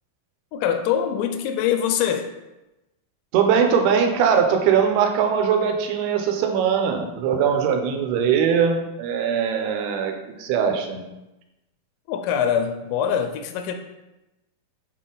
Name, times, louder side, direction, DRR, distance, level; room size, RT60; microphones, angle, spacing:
voice 1, 0.5-2.3 12.1-13.7, left 8 dB, 85° left, 7 dB, 2.0 m, -23 dB
voice 2, 3.3-10.1 10.4-11.1, right 7 dB, 90° right, 4 dB, 2.7 m, -21 dB
6.7 x 4.2 x 3.8 m, 0.98 s
omnidirectional pair, 4.4 m